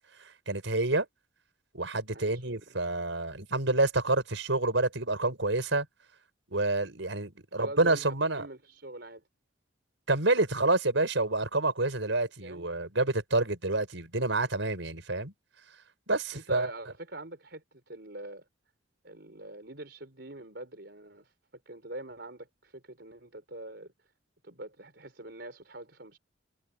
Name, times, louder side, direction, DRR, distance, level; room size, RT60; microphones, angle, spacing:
voice 1, 0.5-1.0 1.7-5.9 6.5-8.5 10.1-15.3 16.1-16.7, right 2 dB, 75° right, 4.8 m, -28 dB
voice 2, 2.1-2.8 7.5-9.2 12.4-12.7 16.3-18.4 19.0-21.3 21.6-24.1 24.4-26.2, right 1 dB, 60° right, 4.8 m, -44 dB
head